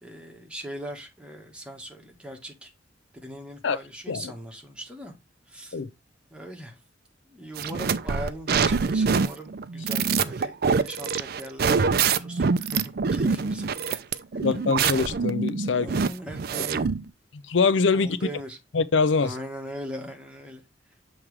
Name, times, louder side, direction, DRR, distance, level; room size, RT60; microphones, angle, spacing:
voice 1, 0.0-2.7 3.2-5.1 5.5-5.8 6.3-6.8 7.3-14.0 14.3-14.4 15.6-16.9 17.9-18.6 19.2-20.6, right 1 dB, 5° right, 1.5 m, -40 dB
sound 1, 7.6-17.1, right 5 dB, 55° right, 0.5 m, -25 dB
voice 2, 14.3-15.9 17.5-18.2 18.7-19.3, left 5 dB, 90° left, 0.6 m, -23 dB
7.2 x 3.2 x 4.9 m
head